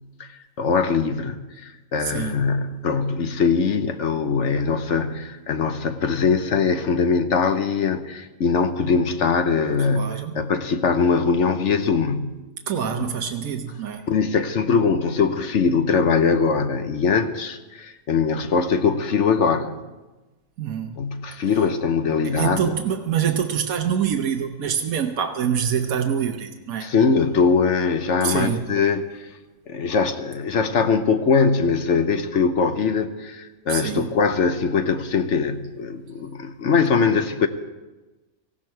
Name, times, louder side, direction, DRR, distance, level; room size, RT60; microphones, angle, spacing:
voice 1, 0.6-12.3 13.0-13.1 14.1-19.7 21.0-22.7 26.8-29.0 29.7-37.5, left 5 dB, 55° left, 1.1 m, -22 dB
voice 2, 2.0-2.4 9.9-10.3 12.7-14.0 20.6-21.0 22.2-26.9 28.2-28.7 33.7-34.1, right 8 dB, 70° right, 1.3 m, -25 dB
18.5 x 15.0 x 4.6 m
omnidirectional pair, 1.5 m